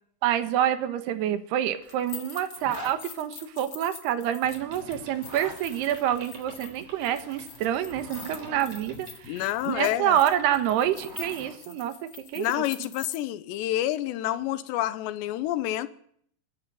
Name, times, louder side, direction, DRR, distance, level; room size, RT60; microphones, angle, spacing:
voice 1, 0.2-11.9 12.3-12.6, right 11 dB, 75° right, 3.2 m, -27 dB
sound 1, 1.8-13.2, left 7 dB, 55° left, 1.5 m, -45 dB
Zipper (clothing), 2.5-3.0 5.1-5.6 7.7-8.6 10.4-11.5, right 1 dB, 20° right, 3.3 m, -41 dB
Boat Water vehicle, 4.4-11.3, right 2 dB, 40° right, 4.6 m, -49 dB
voice 2, 9.3-10.2 12.4-15.9, left 14 dB, 85° left, 3.2 m, -28 dB
24.5 x 11.5 x 9.2 m
omnidirectional pair, 4.9 m